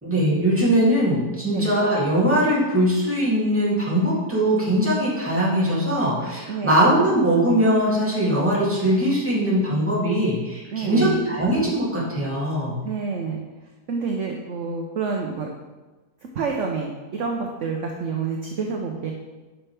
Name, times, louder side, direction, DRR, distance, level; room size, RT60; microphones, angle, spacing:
voice 1, 0.0-12.8, equal, 10° right, -8 dB, 2.5 m, -21 dB
voice 2, 6.5-6.8 10.7-11.2 12.8-13.4 13.9-15.5 16.3-19.1, right 5 dB, 55° right, 1 dB, 1.0 m, -28 dB
10.0 x 5.8 x 3.4 m, 1.2 s
omnidirectional pair, 1.7 m